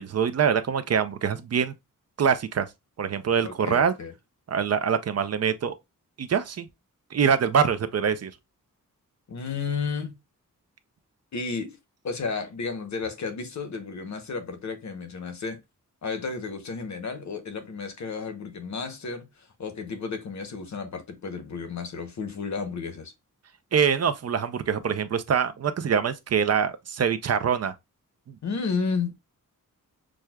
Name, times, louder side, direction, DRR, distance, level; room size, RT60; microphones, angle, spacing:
voice 1, 0.0-1.7 2.2-2.7 3.0-3.9 4.5-5.7 6.2-6.7 7.1-8.3 23.7-27.7 28.3-28.4, right 7 dB, 50° right, 0.5 m, -24 dB
voice 2, 3.4-4.1 9.3-10.2 11.3-11.8 12.0-15.6 16.0-23.1 28.4-29.2, left 4 dB, 55° left, 0.9 m, -32 dB
6.1 x 2.2 x 2.2 m
wide cardioid pair, 155°, 33 cm